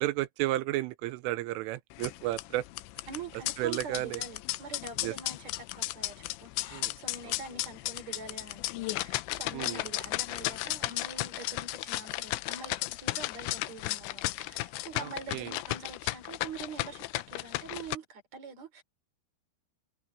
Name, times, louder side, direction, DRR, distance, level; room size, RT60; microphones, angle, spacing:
voice 1, 0.0-2.6 3.6-4.2 5.0-5.1 6.7-6.9 9.5-9.8 15.0-15.6, right 16 dB, 80° right, 3.2 m, -32 dB
sound 1, 1.9-18.0, left 18 dB, 85° left, 2.6 m, -35 dB
voice 2, 3.1-18.8, right 4 dB, 35° right, 4.6 m, -45 dB
omnidirectional pair, 6.0 m